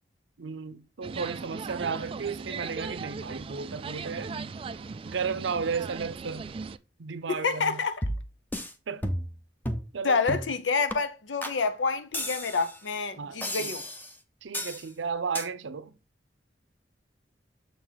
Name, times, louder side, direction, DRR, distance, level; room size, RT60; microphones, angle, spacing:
voice 1, 0.4-4.6 5.0-6.5 7.0-7.8 8.9-9.0 9.9-10.2 13.2-13.7 14.4-16.0, right 5 dB, 85° right, 0.6 m, -34 dB
sound 1, 1.0-6.8, right 4 dB, 30° right, 0.3 m, -38 dB
voice 2, 7.3-8.0 10.0-13.8, left 4 dB, 85° left, 0.7 m, -28 dB
sound 2, 8.0-8.7 9.0-9.4 9.6-9.9 10.3-10.5 10.9-11.0 11.4-11.6 12.1-12.8 13.4-14.1 14.5-14.8 15.3-15.5, equal, 10° left, 0.8 m, -33 dB
6.9 x 4.6 x 4.0 m
head